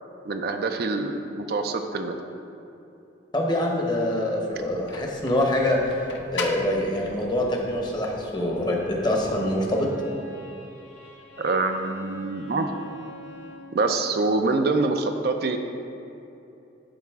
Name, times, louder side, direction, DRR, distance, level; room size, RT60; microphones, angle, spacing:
voice 1, 0.2-2.2 11.4-12.7 13.7-15.6, right 3 dB, 55° right, 6 dB, 0.4 m, -25 dB
voice 2, 3.3-9.9, left 1 dB, 25° left, 0 dB, 0.9 m, -25 dB
sound 1, 4.5-9.5, left 4 dB, 80° left, 0.7 m, -40 dB
Bowed string instrument, 8.4-13.8, right 1 dB, 60° left, 1.7 m, -45 dB
12.0 x 4.1 x 3.5 m, 2.8 s
head